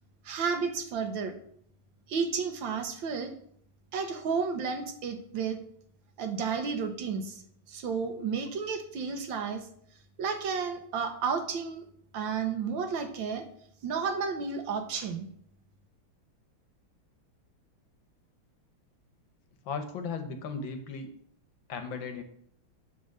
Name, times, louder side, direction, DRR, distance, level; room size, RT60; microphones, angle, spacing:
voice 1, 0.2-1.3 2.1-3.3 3.9-5.6 6.2-7.4 7.7-9.7 10.2-11.8 12.1-13.5 13.8-15.3, right 5 dB, 65° right, 6 dB, 1.5 m, -32 dB
voice 2, 19.6-21.1 21.7-22.2, left 5 dB, 65° left, 7 dB, 1.5 m, -36 dB
9.8 x 3.5 x 6.4 m, 0.64 s
omnidirectional pair, 2.4 m